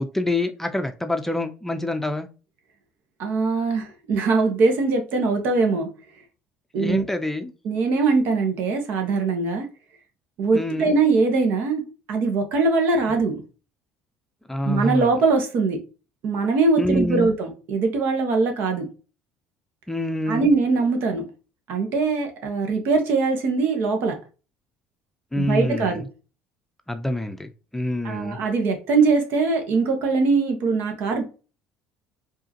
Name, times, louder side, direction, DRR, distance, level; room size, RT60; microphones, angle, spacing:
voice 1, 0.0-2.3 6.7-7.5 10.5-10.9 14.5-15.1 16.8-17.3 19.9-20.5 25.3-26.0 26.9-28.4, left 1 dB, 10° left, 0.5 m, -26 dB
voice 2, 3.2-5.9 6.7-7.0 7.6-9.6 10.4-11.8 12.1-13.4 14.6-15.8 16.2-18.8 20.3-21.2 21.7-24.1 25.3-26.0 28.0-31.2, right 4 dB, 65° right, 1.2 m, -21 dB
4.7 x 2.8 x 2.9 m
supercardioid pair, 85°, 4 cm